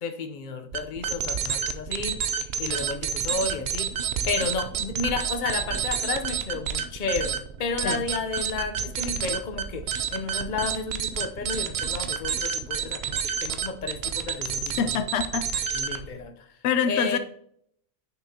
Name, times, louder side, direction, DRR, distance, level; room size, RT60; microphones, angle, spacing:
voice 1, 0.0-4.0 4.3-9.9 10.1-15.0 15.7-16.3 16.9-17.2, left 4 dB, 50° left, 6 dB, 0.9 m, -32 dB
sound 1, 0.7-16.2, right 7 dB, 70° right, 0.8 m, -29 dB
voice 2, 14.8-15.8 16.6-17.2, left 6 dB, 80° left, 11 dB, 0.8 m, -26 dB
9.5 x 5.8 x 2.8 m, 0.66 s
omnidirectional pair, 1.1 m